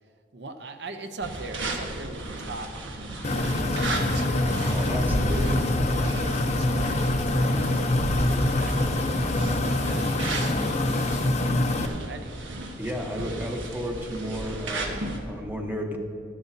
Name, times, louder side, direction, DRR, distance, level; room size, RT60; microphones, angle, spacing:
voice 1, 0.3-2.7 3.1-5.1 5.9-12.4, right 3 dB, 60° right, 7 dB, 0.7 m, -41 dB
sound 1, 1.2-15.2, right 1 dB, 85° right, 1.2 m, -33 dB
sound 2, 3.2-11.9, left 1 dB, 35° left, 0.6 m, -25 dB
voice 2, 4.7-5.7 12.8-16.0, equal, 10° right, 2 dB, 0.8 m, -33 dB
13.0 x 11.0 x 2.7 m, 2.5 s
head